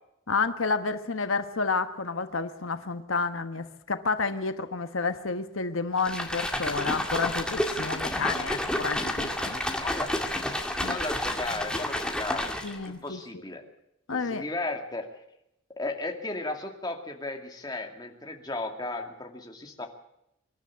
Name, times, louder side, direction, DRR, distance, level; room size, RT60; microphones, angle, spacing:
voice 1, 0.3-9.6 10.8-11.0 12.6-13.2 14.1-14.4, left 4 dB, 85° left, 9 dB, 1.3 m, -30 dB
sound 1, 6.0-12.9, left 1 dB, 5° left, 2.0 m, -30 dB
voice 2, 9.8-10.1 10.9-12.5 12.9-13.6 14.1-15.1 15.8-19.9, left 2 dB, 20° left, 3 dB, 2.4 m, -35 dB
25.5 x 12.0 x 8.5 m, 0.83 s
head